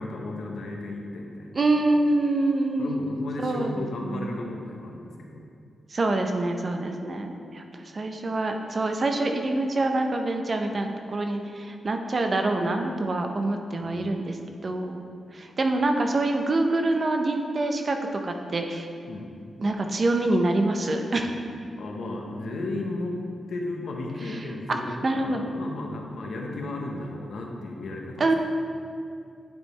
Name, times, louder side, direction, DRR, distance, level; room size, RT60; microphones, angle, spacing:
voice 1, 0.0-1.6 2.8-5.5 13.8-14.1 19.1-19.5 21.8-23.2 23.5-28.3, left 2 dB, 70° left, 1 dB, 0.9 m, -34 dB
voice 2, 1.5-3.0 3.4-4.4 5.9-15.1 15.3-18.0 18.2-18.9 19.6-21.4 24.2-25.4 28.2-28.3, right 2 dB, 35° right, 4 dB, 0.5 m, -26 dB
9.1 x 5.2 x 3.2 m, 2.3 s
wide cardioid pair, 145°, 0 cm